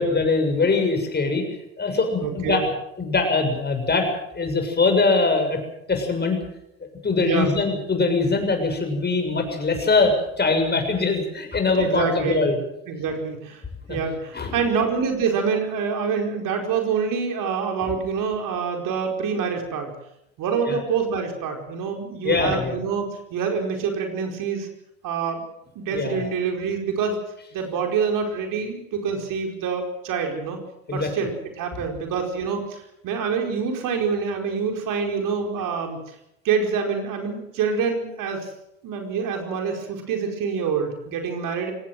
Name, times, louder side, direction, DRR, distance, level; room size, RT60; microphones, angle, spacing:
voice 1, 0.0-1.4 1.8-2.6 3.0-4.1 4.3-5.6 5.9-6.4 7.0-12.6 13.9-14.0 14.3-14.5 20.7-20.8 22.2-22.8 25.9-26.2 30.9-31.1, left 3 dB, 25° left, 5 dB, 6.9 m, -22 dB
voice 2, 2.2-2.6 7.2-7.5 11.7-12.5 12.9-13.6 13.9-19.9 20.4-24.7 25.0-25.4 25.7-27.2 27.5-30.6 30.9-36.0 36.4-38.5 38.8-41.7, right 6 dB, 50° right, 3 dB, 4.9 m, -26 dB
23.5 x 18.5 x 7.7 m, 0.81 s
hypercardioid pair, 70°, 41 cm